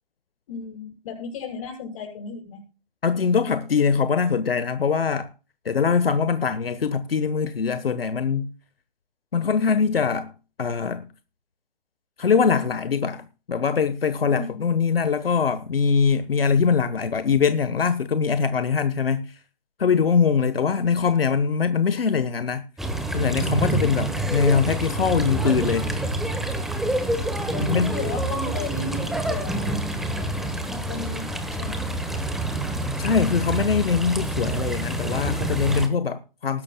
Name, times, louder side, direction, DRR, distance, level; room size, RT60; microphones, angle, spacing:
voice 1, 0.5-2.6 14.2-14.6 20.8-21.1 27.5-31.8, left 4 dB, 35° left, 6.9 m, -36 dB
voice 2, 3.0-5.3 5.6-8.5 9.3-10.3 10.6-11.1 12.2-19.4 19.8-22.6 23.1-25.9 27.6-27.9 33.0-36.6, left 6 dB, 80° left, 1.2 m, -22 dB
sound 1, 22.8-35.9, right 1 dB, ahead, 1.0 m, -27 dB
20.0 x 11.0 x 2.2 m
hypercardioid pair, 150°, 29 cm